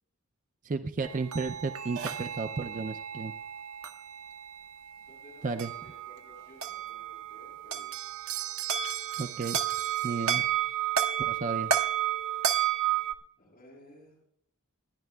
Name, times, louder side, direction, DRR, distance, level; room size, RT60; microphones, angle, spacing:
voice 1, 0.6-3.3 5.4-5.7 9.2-9.6 10.0-10.4 11.2-11.7, right 4 dB, 35° right, 8 dB, 0.4 m, -33 dB
sound 1, 1.0-13.1, right 10 dB, 75° right, 0.8 m, -32 dB
voice 2, 5.0-7.9 13.4-14.2, left 1 dB, 45° left, -3 dB, 5.7 m, -55 dB
28.0 x 10.5 x 2.3 m, 0.70 s
head